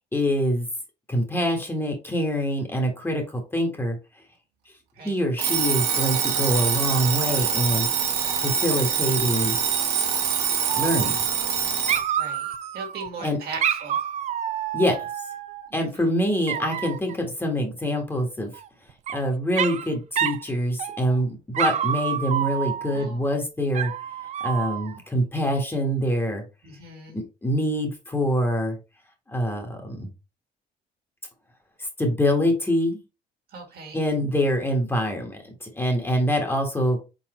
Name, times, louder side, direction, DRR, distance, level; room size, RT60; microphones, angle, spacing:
voice 1, 0.1-0.7 1.1-4.0 5.0-7.9 8.4-9.6 10.8-11.2 13.2-13.4 14.7-15.0 15.7-18.5 19.1-23.9 24.4-26.4 27.1-28.8 29.3-30.1 32.0-33.0 33.9-37.0, equal, 15° left, 2 dB, 1.3 m, -25 dB
Alarm, 5.4-12.1, right 7 dB, 85° right, 1.3 m, -24 dB
Dog, 10.7-11.6 11.9-13.1 13.6-15.7 16.5-17.1 18.5-19.2 19.6-19.9 20.2-20.4 20.8-21.2 21.5-23.1 23.7-25.0, right 9 dB, 45° right, 0.4 m, -28 dB
voice 2, 12.2-14.0 15.7-16.1 22.9-23.3 26.6-27.2 33.5-34.0, right 4 dB, 65° right, 2 dB, 1.7 m, -39 dB
4.1 x 4.0 x 3.0 m, 0.29 s
cardioid pair, 110°, 17 cm